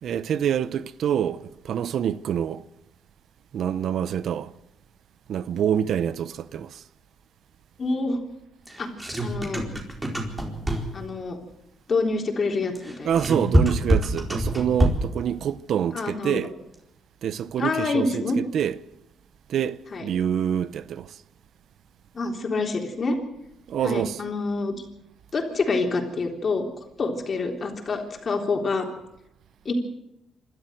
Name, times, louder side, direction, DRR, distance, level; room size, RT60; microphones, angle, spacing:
voice 1, 0.0-2.6 3.5-4.5 5.3-6.8 13.0-16.5 17.2-18.8 19.5-21.2 23.7-24.2, right 9 dB, 70° right, 0.7 m, -26 dB
voice 2, 7.8-8.2 8.8-8.9 9.2-9.6 10.9-11.4 11.9-13.1 15.9-16.4 17.6-18.4 19.9-20.1 22.1-23.2 23.8-24.8 25.3-26.7 27.0-28.9 29.7-29.8, left 3 dB, 40° left, 3.6 m, -26 dB
sound 1, 8.7-11.1 12.8-15.2, right 1 dB, 15° right, 4.3 m, -24 dB
26.0 x 13.0 x 7.8 m
cardioid pair, 90°, 0 cm